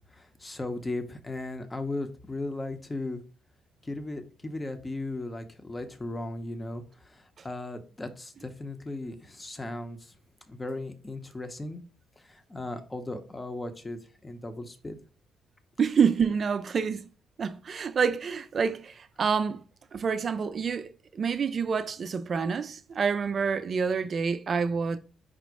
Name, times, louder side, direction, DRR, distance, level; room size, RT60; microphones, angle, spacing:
voice 1, 0.1-3.2 3.8-10.1 10.5-11.8 12.2-15.0, left 2 dB, 20° left, 0.7 m, -37 dB
voice 2, 15.8-17.0 17.4-19.6 19.9-25.0, right 6 dB, 45° right, 0.4 m, -27 dB
5.0 x 2.0 x 4.6 m
cardioid pair, 90°, 0 cm